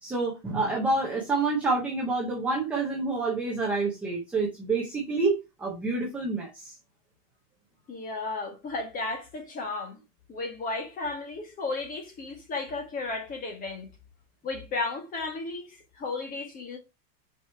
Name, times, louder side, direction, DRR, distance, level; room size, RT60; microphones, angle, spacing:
voice 1, 0.0-6.7, right 3 dB, 5° right, 0.4 m, -28 dB
voice 2, 7.9-10.0 10.3-13.9 14.4-16.8, left 3 dB, 20° left, 1.6 m, -34 dB
6.0 x 4.7 x 4.3 m
supercardioid pair, 170°, 46 cm